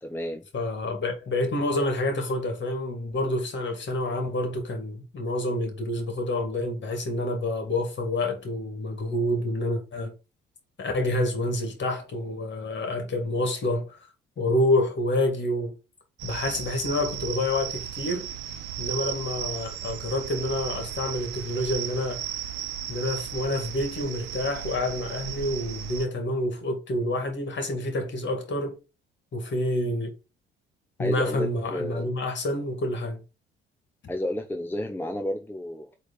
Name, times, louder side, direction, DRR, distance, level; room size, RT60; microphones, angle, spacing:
voice 1, 0.0-0.4 31.0-32.1 34.1-35.9, left 1 dB, 5° left, 1.0 m, -31 dB
voice 2, 0.5-10.1 10.8-14.0 14.4-15.7 16.2-18.3 18.8-22.2 22.9-28.8 29.3-30.1 31.0-33.2, left 1 dB, 40° left, 2.4 m, -28 dB
sound 1, 16.2-26.1, right 10 dB, 65° right, 1.1 m, -35 dB
7.8 x 3.4 x 4.0 m
figure-of-eight pair, 50°, 29 cm